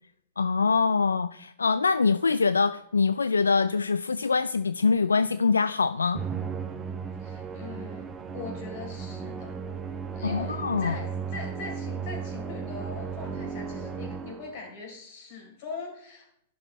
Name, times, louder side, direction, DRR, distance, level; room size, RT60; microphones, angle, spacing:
voice 1, 0.4-6.2 10.2-11.0, left 4 dB, 85° left, 14 dB, 0.3 m, -24 dB
Musical instrument, 6.1-14.7, right 6 dB, 20° right, 0.9 m, -35 dB
voice 2, 7.2-8.0 8.3-9.5 10.1-16.3, left 4 dB, 55° left, 1 dB, 4.3 m, -41 dB
11.5 x 6.3 x 4.5 m, 0.72 s
hypercardioid pair, 105°, 0 cm